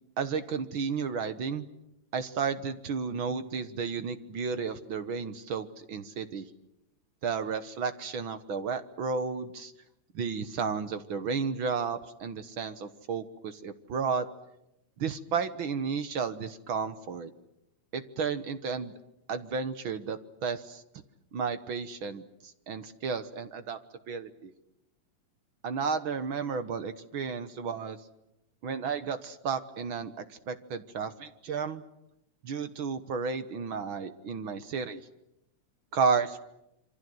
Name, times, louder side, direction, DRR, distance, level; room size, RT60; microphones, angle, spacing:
voice 1, 0.2-1.6 2.1-6.5 7.2-9.7 10.1-14.2 15.0-17.3 17.9-18.9 19.3-20.8 21.3-22.2 22.7-23.8 24.1-24.5 25.6-28.0 28.6-31.8 32.4-35.0 35.9-36.4, right 5 dB, 55° right, 11 dB, 1.5 m, -32 dB
27.5 x 25.0 x 7.9 m, 0.84 s
omnidirectional pair, 3.4 m